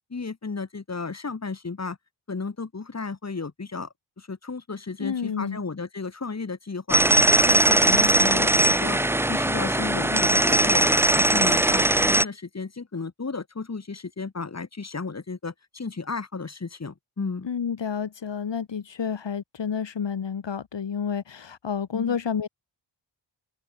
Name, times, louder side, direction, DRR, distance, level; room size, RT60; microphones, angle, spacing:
voice 1, 0.1-2.0 2.3-9.0 9.3-10.9 11.1-17.5 21.9-22.2, left 4 dB, 35° left, 4.1 m, -33 dB
voice 2, 5.0-5.6 17.4-22.5, left 7 dB, 75° left, 3.8 m, -30 dB
sound 1, 6.9-12.2, right 1 dB, 5° right, 0.6 m, -20 dB
open air
wide cardioid pair, 165°, 43 cm